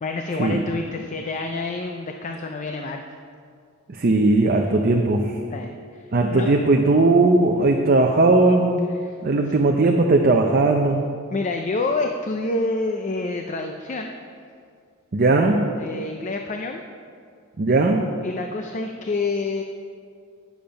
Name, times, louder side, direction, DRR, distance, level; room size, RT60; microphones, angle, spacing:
voice 1, 0.0-3.0 5.5-6.6 9.0-9.2 11.3-14.1 15.8-16.8 18.2-19.6, left 3 dB, 35° left, 4 dB, 0.4 m, -28 dB
voice 2, 4.0-5.3 6.1-8.8 9.2-11.1 15.1-15.7 17.6-18.0, right 2 dB, 45° right, 2 dB, 0.5 m, -18 dB
8.8 x 7.1 x 5.1 m, 2.2 s
head